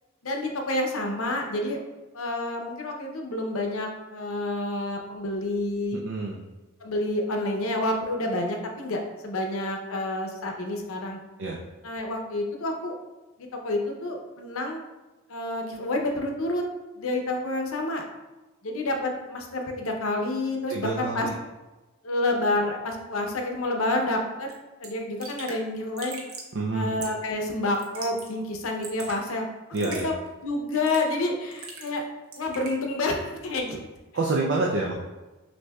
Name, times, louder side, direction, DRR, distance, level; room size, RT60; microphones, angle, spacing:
voice 1, 0.2-1.8 2.1-6.0 6.8-11.2 11.8-12.9 13.4-14.8 15.3-16.6 17.0-18.0 18.6-21.3 22.0-24.5 24.8-26.2 26.7-29.5 29.8-30.1 30.4-32.0 32.4-33.8, left 2 dB, 75° left, 3 dB, 0.6 m, -29 dB
voice 2, 5.9-6.4 11.4-11.6 20.7-21.3 26.6-26.9 29.7-30.1 34.1-34.9, right 3 dB, 55° right, -1 dB, 0.4 m, -27 dB
Raindrop / Drip, 24.5-24.6 24.8-24.9 25.2-25.6 26.0-26.5 27.0-27.3 27.7-28.3 28.6-29.2 29.7-30.1 30.7-31.1 31.5-32.0 32.3-32.8, right 4 dB, 85° right, 0.8 m, -40 dB
6.2 x 2.6 x 2.3 m, 1.2 s
head